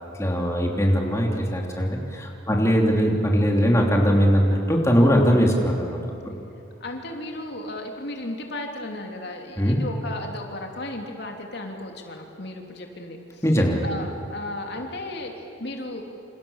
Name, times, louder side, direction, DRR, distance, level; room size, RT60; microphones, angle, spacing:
voice 1, 0.2-6.0 9.6-9.8 13.4-13.9, equal, 15° left, 0 dB, 3.2 m, -20 dB
voice 2, 6.8-13.4 13.8-16.0, left 1 dB, 55° left, 2 dB, 3.0 m, -35 dB
28.5 x 28.0 x 7.3 m, 2.8 s
head